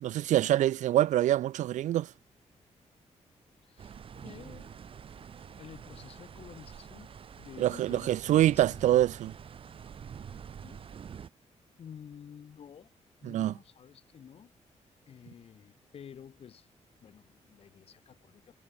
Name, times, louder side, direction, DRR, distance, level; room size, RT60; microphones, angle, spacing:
voice 1, 0.0-2.1 7.6-9.3 13.2-13.5, right 13 dB, 85° right, 0.4 m, -25 dB
voice 2, 3.6-4.7 5.2-7.1 7.4-9.1 10.2-10.9 11.8-12.9 13.2-14.5 15.1-16.7 17.0-18.5, left 8 dB, 50° left, 5.8 m, -51 dB
sound 1, 3.8-11.3, right 7 dB, 45° right, 3.3 m, -47 dB
wide cardioid pair, 165°, 12 cm